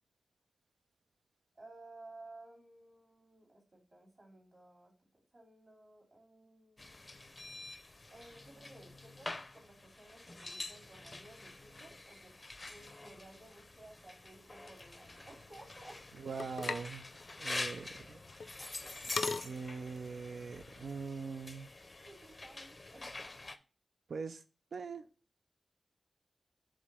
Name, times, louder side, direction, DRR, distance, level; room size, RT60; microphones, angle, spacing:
voice 1, 1.5-4.9 5.3-7.1 8.1-12.3 12.7-16.0 22.0-23.1, right 2 dB, 50° right, 2.7 m, -56 dB
sound 1, 6.8-23.6, left 2 dB, 30° left, 0.5 m, -47 dB
sound 2, 14.7-21.1, left 4 dB, 80° left, 0.5 m, -44 dB
voice 2, 16.2-17.1 17.4-18.2 19.4-21.7 24.1-24.4 24.7-25.1, right 5 dB, 90° right, 0.5 m, -42 dB
5.0 x 3.7 x 5.4 m
wide cardioid pair, 115°, 0 cm